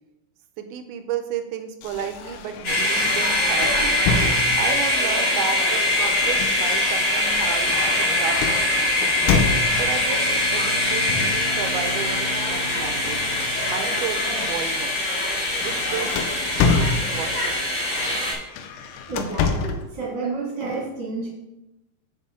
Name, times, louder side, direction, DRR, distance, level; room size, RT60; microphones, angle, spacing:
voice 1, 0.6-4.0 4.6-9.3 9.7-13.2 13.7-15.1 15.6-16.2 16.6-18.0, right 8 dB, 80° right, 7 dB, 2.4 m, -33 dB
sound 1, 1.8-4.9 5.9-10.1 11.1-11.5 11.8-14.1 14.5-14.7 15.1-17.5 18.4-19.9, left 4 dB, 85° left, 2.7 m, -28 dB
sound 2, 2.6-18.3, left 1 dB, 45° left, 3.2 m, -23 dB
Bowed string instrument, 9.7-14.7, left 1 dB, 20° left, 1.1 m, -37 dB
voice 2, 18.7-21.3, right 3 dB, 45° right, -4 dB, 1.9 m, -31 dB
7.6 x 7.6 x 3.7 m, 0.94 s
omnidirectional pair, 4.7 m